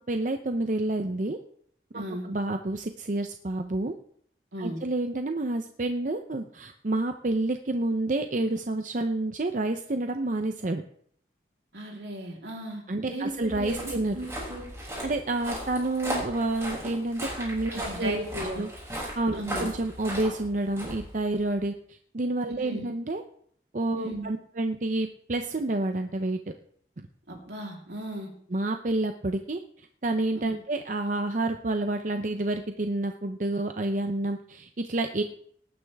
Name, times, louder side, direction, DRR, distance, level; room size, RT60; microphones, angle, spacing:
voice 1, 0.1-1.4 1.9-3.9 4.6-10.8 12.9-14.2 15.0-18.2 18.6-18.7 19.0-23.2 23.7-26.4 27.0-27.1 28.5-35.2, right 2 dB, 45° right, 6 dB, 0.7 m, -29 dB
voice 2, 1.9-2.3 4.5-4.8 11.7-14.7 17.7-18.6 19.3-19.7 22.5-22.8 23.9-24.3 27.3-28.3 30.3-30.6, right 1 dB, 75° right, -1 dB, 3.5 m, -36 dB
Walk footsteps, 13.3-21.6, equal, 15° right, 6.3 m, -37 dB
18.5 x 9.6 x 3.5 m, 0.63 s
head